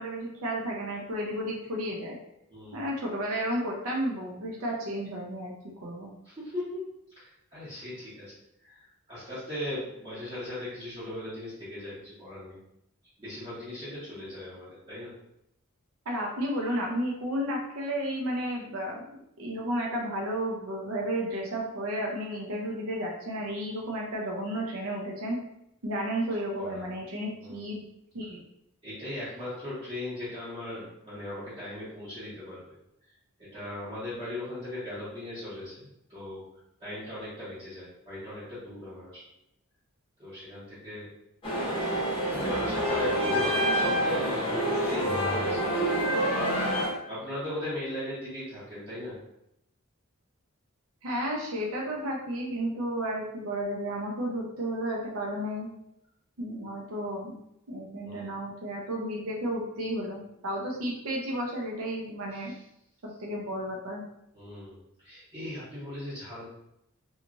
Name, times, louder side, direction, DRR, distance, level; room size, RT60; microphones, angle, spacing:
voice 1, 0.0-2.2 2.7-5.5 5.8-6.1 16.1-19.0 19.4-25.4 25.8-27.8 28.1-28.4 51.0-55.7 56.4-57.4 57.7-62.5 63.2-64.0, equal, 65° right, -2 dB, 0.6 m, -32 dB
voice 2, 2.5-2.8 6.2-6.8 7.2-8.3 8.6-8.8 9.1-12.6 13.2-15.1 26.6-26.9 27.4-27.7 28.8-32.6 33.4-36.4 36.8-39.2 40.2-41.1 42.3-45.6 47.0-49.2 58.0-58.3 62.3-62.5 64.3-66.4, left 1 dB, 25° right, -12 dB, 1.0 m, -38 dB
sound 1, 41.4-46.9, equal, 25° left, 0.8 m, -27 dB
2.9 x 2.4 x 2.5 m, 0.79 s
head